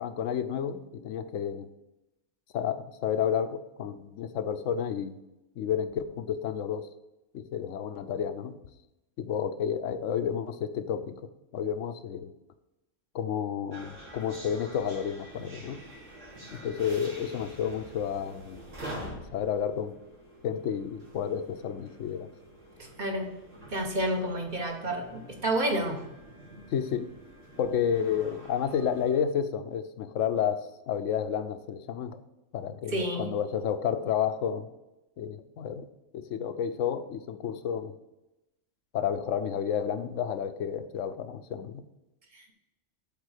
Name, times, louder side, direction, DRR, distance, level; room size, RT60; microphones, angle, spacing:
voice 1, 0.0-1.7 2.5-5.2 5.6-6.9 7.3-8.6 9.2-12.3 13.1-15.8 16.5-18.6 18.9-20.0 20.4-22.3 26.7-27.1 27.6-32.2 32.5-34.7 35.2-35.9 36.1-37.9 38.9-41.8, left 8 dB, 70° left, 11 dB, 1.0 m, -31 dB
sound 1, 13.7-29.2, right 1 dB, 70° right, 2.7 m, -47 dB
voice 2, 22.8-23.3 23.7-26.0 32.9-33.3 42.3-42.5, right 1 dB, 40° right, 2 dB, 1.3 m, -30 dB
8.3 x 4.0 x 6.5 m, 0.96 s
omnidirectional pair, 1.4 m